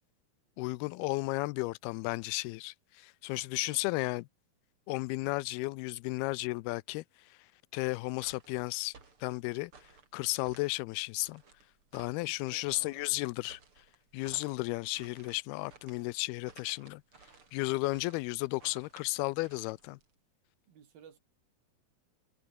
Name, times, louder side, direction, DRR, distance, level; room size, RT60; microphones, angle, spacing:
voice 1, 0.6-4.3 4.9-7.0 7.7-8.9 9.2-9.7 10.1-11.4 11.9-13.6 14.1-17.0 17.5-20.0, left 22 dB, 85° left, 2.5 m, -34 dB
sound 1, 8.1-20.1, right 4 dB, 35° right, 4.5 m, -58 dB
voice 2, 12.3-13.1 20.7-21.2, right 8 dB, 70° right, 4.9 m, -56 dB
omnidirectional pair, 4.5 m